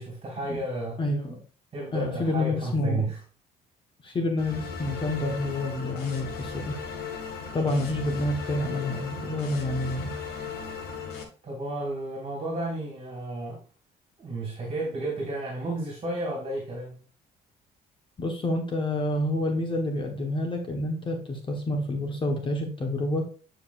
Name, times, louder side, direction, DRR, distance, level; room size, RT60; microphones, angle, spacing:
voice 1, 0.0-1.0 1.7-3.2 11.4-13.6 14.2-17.0, right 2 dB, 35° right, -1 dB, 2.5 m, -32 dB
voice 2, 1.0-1.4 1.9-3.1 4.0-6.8 7.5-10.1 18.2-23.2, left 1 dB, 30° left, 3 dB, 1.4 m, -28 dB
sound 1, 4.4-11.2, left 5 dB, 65° left, 1.9 m, -37 dB
9.7 x 5.1 x 2.6 m, 0.38 s
cardioid pair, 110°, 17 cm